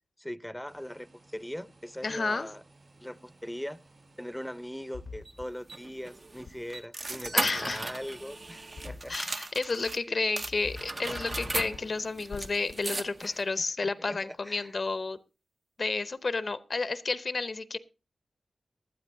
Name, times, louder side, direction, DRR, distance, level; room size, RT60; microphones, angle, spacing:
voice 1, 0.2-2.6 3.0-3.8 4.2-9.5 10.1-10.2 13.2-14.8, equal, 5° left, 0.6 m, -41 dB
sound 1, 0.7-5.8, right 2 dB, 70° right, 4.4 m, -60 dB
voice 2, 2.0-2.5 7.3-7.8 9.1-15.2 15.8-17.8, left 3 dB, 60° left, 0.6 m, -31 dB
sound 2, 4.9-5.4 6.5-6.6 8.8-9.2 9.6-9.9 10.4-10.8 11.1-11.8 12.3-12.7, left 4 dB, 90° left, 0.8 m, -43 dB
sound 3, 5.2-10.0 10.4-13.4, right 2 dB, 50° right, 0.7 m, -37 dB
19.0 x 12.0 x 2.6 m
cardioid pair, 45°, 0 cm